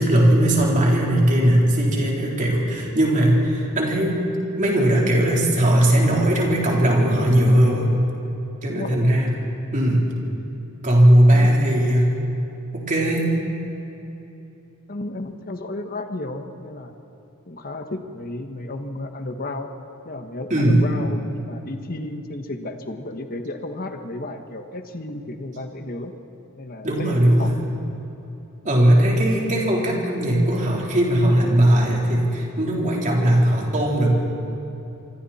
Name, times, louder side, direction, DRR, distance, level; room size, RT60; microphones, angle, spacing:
voice 1, 0.0-4.2 4.6-7.9 8.6-9.3 9.7-10.1 10.8-12.1 12.7-13.3 20.5-20.9 26.8-27.5 28.6-34.1, right 1 dB, 35° right, -2 dB, 4.0 m, -18 dB
voice 2, 8.7-9.1 11.3-11.5 14.9-17.0 17.5-19.7 20.0-26.1 26.6-27.5, left 2 dB, 45° left, 6 dB, 1.4 m, -33 dB
26.5 x 24.5 x 4.4 m, 3.0 s
head